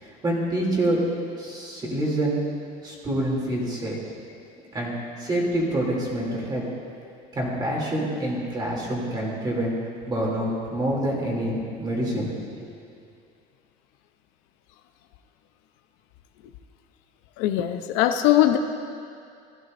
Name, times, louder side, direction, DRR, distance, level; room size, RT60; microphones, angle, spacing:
voice 1, 0.0-1.0 1.4-2.4 2.8-4.0 4.7-4.9 5.2-6.6 7.3-9.7 10.1-12.7, right 1 dB, 25° right, -4 dB, 2.8 m, -27 dB
voice 2, 17.4-18.6, left 12 dB, 80° left, 7 dB, 0.7 m, -20 dB
16.0 x 12.0 x 2.6 m, 2.4 s
cardioid pair, 140°, 19 cm